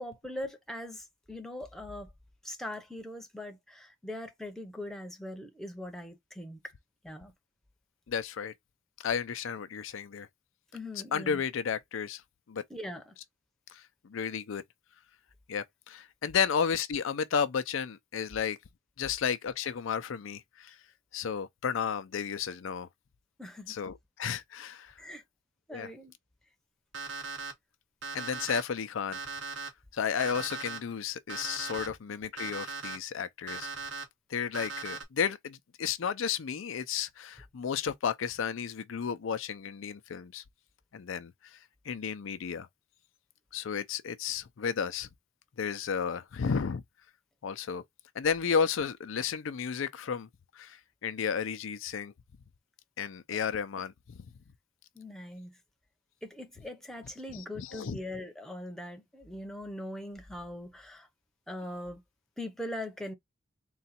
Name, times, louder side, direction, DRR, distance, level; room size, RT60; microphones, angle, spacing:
voice 1, 0.0-2.1 2.4-6.6 7.0-7.3 10.7-11.4 12.7-13.1 23.4-23.7 25.0-25.2 25.7-26.1 54.9-55.6 56.2-61.1 61.5-62.0 62.4-63.1, left 1 dB, ahead, 0.7 m, -41 dB
voice 2, 8.1-8.5 9.0-10.3 11.1-12.2 12.5-12.6 13.7-14.6 15.5-18.6 19.0-20.8 21.1-22.9 23.7-24.9 25.7-25.9 28.1-29.2 29.9-33.7 34.3-40.4 40.9-41.6 41.9-42.7 43.5-45.1 45.6-46.8 47.4-47.8 48.1-50.3 50.6-52.1 53.0-54.2 57.6-58.0, left 7 dB, 75° left, 0.5 m, -33 dB
Alarm, 26.9-27.5 28.0-28.6 29.1-29.7 30.2-30.8 31.3-31.9 32.4-33.0 33.5-34.0 34.5-35.0, right 4 dB, 65° right, 1.1 m, -38 dB
3.9 x 2.3 x 4.2 m
head